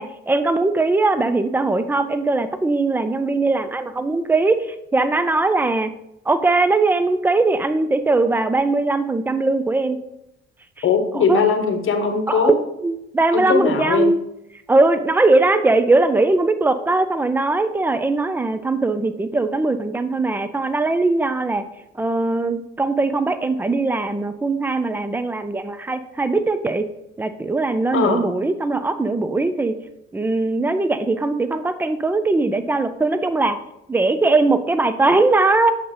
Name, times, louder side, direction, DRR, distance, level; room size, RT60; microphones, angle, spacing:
voice 1, 0.0-5.9 6.3-10.0 11.1-11.4 12.3-12.5 12.8-14.2 14.7-21.6 22.0-26.9 27.2-29.8 30.1-33.6 33.9-35.7, right 3 dB, 5° right, 11 dB, 0.4 m, -20 dB
voice 2, 10.8-12.6 13.3-14.1 27.9-28.3, left 5 dB, 35° left, 7 dB, 1.0 m, -20 dB
7.6 x 3.8 x 3.8 m, 0.84 s
figure-of-eight pair, 45°, 34 cm